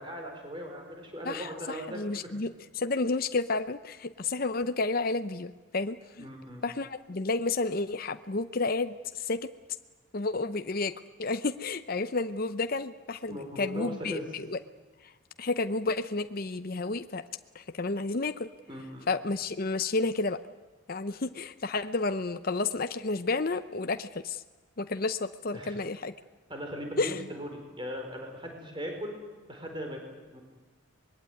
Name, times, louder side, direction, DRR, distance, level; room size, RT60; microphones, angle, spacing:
voice 1, 0.0-2.3 6.2-6.6 13.3-14.3 18.7-19.1 25.5-25.8 26.5-29.1 29.5-30.4, equal, 25° right, 3 dB, 4.7 m, -39 dB
voice 2, 1.2-6.3 6.6-9.5 10.1-14.6 15.0-15.1 15.4-17.2 17.5-18.5 19.1-20.4 20.9-24.4 24.8-26.1 27.0-27.2, left 3 dB, 45° left, 9 dB, 0.7 m, -31 dB
24.5 x 21.5 x 9.4 m, 1.3 s
head